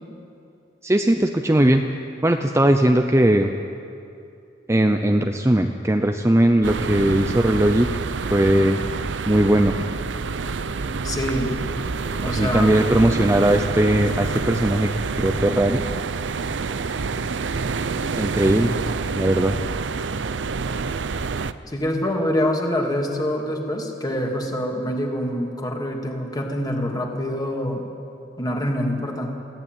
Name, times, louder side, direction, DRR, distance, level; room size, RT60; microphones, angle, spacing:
voice 1, 0.8-1.8 2.2-3.5 4.7-7.9 8.3-8.8 9.3-9.8 12.2-14.9 15.2-15.9 18.2-18.8 19.2-19.6, right 1 dB, 15° right, 5 dB, 0.7 m, -19 dB
sound 1, 6.6-21.5, right 4 dB, 70° right, 0.6 m, -27 dB
voice 2, 11.0-11.5 12.2-12.7 21.7-27.9 28.4-29.4, left 1 dB, 20° left, 1 dB, 2.6 m, -25 dB
20.0 x 15.0 x 9.1 m, 2.6 s
head